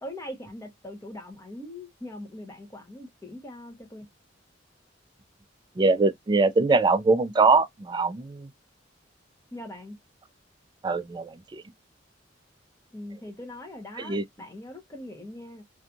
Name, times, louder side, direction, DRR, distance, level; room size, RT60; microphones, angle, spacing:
voice 1, 0.0-4.0 9.5-10.0 12.9-15.6, left 1 dB, 15° left, 0.7 m, -41 dB
voice 2, 5.8-8.5 10.8-11.6 14.0-14.2, right 3 dB, 25° right, 0.3 m, -22 dB
2.6 x 2.3 x 2.5 m
head